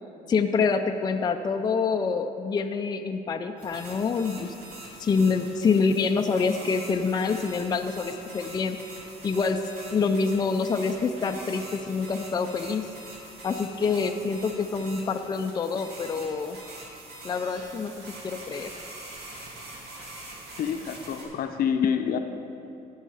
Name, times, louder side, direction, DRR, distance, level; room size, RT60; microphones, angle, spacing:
voice 1, 0.3-4.5 5.0-8.8 9.2-9.6 9.9-12.9 13.4-16.6 17.2-18.7, left 5 dB, 25° left, 5 dB, 0.4 m, -26 dB
sound 1, 3.6-21.2, right 2 dB, 75° right, 2.3 m, -44 dB
voice 2, 20.6-22.2, left 8 dB, 60° left, 7 dB, 0.7 m, -27 dB
14.0 x 5.5 x 4.9 m, 2.6 s
cardioid pair, 110°, 17 cm